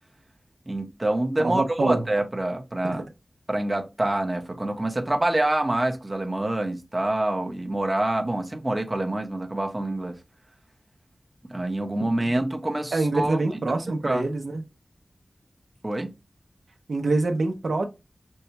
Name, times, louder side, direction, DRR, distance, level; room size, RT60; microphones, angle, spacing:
voice 1, 0.7-3.0 3.5-10.2 11.5-13.6 14.0-14.3 15.8-16.1, right 1 dB, 20° right, 0.8 m, -26 dB
voice 2, 1.4-2.0 12.9-14.6 16.9-17.9, right 2 dB, 75° right, 0.7 m, -25 dB
5.4 x 2.2 x 2.8 m
wide cardioid pair, 90°, 0 cm